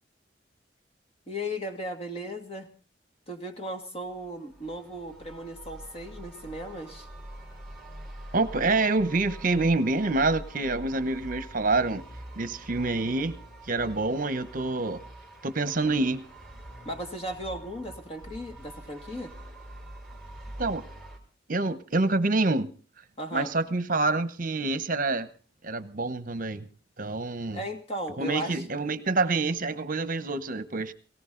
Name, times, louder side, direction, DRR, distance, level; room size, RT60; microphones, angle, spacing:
voice 1, 1.3-2.7 3.3-7.1 16.8-19.3 23.2-23.5 27.5-28.6, equal, 35° left, 5 dB, 2.2 m, -36 dB
sound 1, 4.0-21.2, right 1 dB, 5° left, 4.2 m, -45 dB
voice 2, 8.3-12.0 12.4-13.4 13.7-15.0 15.4-16.2 20.6-20.8 21.5-22.7 23.3-25.3 25.6-26.7 27.0-27.6 28.2-30.9, right 3 dB, 50° right, 13 dB, 1.0 m, -27 dB
19.0 x 18.0 x 3.9 m, 0.37 s
head